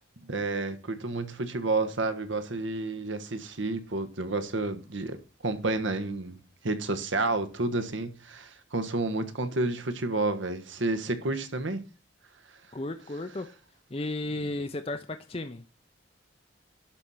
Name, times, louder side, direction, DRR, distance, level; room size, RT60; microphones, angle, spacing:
voice 1, 0.3-5.2 5.4-6.4 6.6-11.8, right 2 dB, 75° right, 1.3 m, -30 dB
voice 2, 12.7-13.5 13.9-15.6, left 2 dB, 30° left, 0.6 m, -34 dB
11.5 x 4.2 x 6.4 m
head